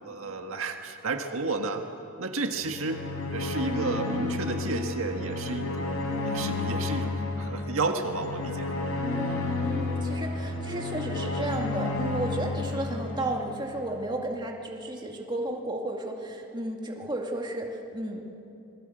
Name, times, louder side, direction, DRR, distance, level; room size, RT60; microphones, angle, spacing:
voice 1, 0.0-1.8 2.2-3.0 3.3-6.0 6.2-8.8, right 3 dB, 75° right, 4 dB, 1.6 m, -32 dB
sound 1, 2.6-13.9, left 2 dB, 80° left, 4.7 m, -31 dB
voice 2, 9.2-18.2, right 1 dB, 20° right, 0 dB, 2.2 m, -33 dB
26.5 x 20.5 x 7.9 m, 2.8 s
head